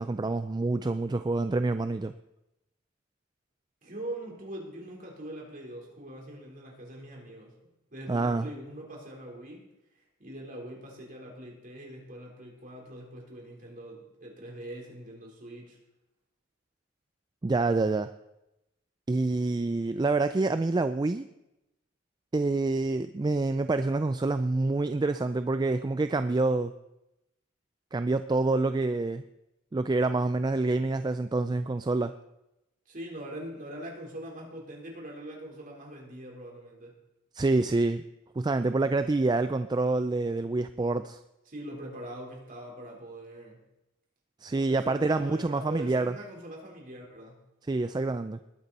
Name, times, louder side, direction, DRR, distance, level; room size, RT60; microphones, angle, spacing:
voice 1, 0.0-2.1 8.1-8.5 17.4-18.1 19.1-21.2 22.3-26.7 27.9-29.2 29.7-32.1 37.3-38.0 38.4-41.2 44.4-46.1 47.7-48.4, right 3 dB, 20° right, 10 dB, 0.3 m, -27 dB
voice 2, 3.8-7.6 7.9-9.7 10.2-15.8 32.9-37.0 41.5-43.6 44.5-47.4, right 1 dB, 45° right, -1 dB, 4.1 m, -42 dB
20.0 x 9.2 x 4.2 m, 0.90 s
head